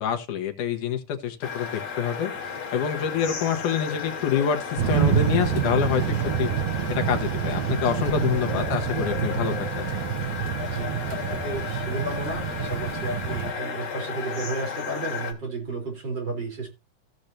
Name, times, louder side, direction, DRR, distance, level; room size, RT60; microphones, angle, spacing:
voice 1, 0.0-2.3 2.7-6.5 7.0-9.9, left 8 dB, 85° left, 2.9 m, -26 dB
sound 1, 1.4-15.3, left 6 dB, 55° left, 3.5 m, -34 dB
sound 2, 4.8-13.5, right 10 dB, 70° right, 2.0 m, -27 dB
voice 2, 7.7-8.1 10.6-16.7, right 2 dB, 35° right, 5.0 m, -33 dB
16.5 x 6.6 x 2.9 m
omnidirectional pair, 3.5 m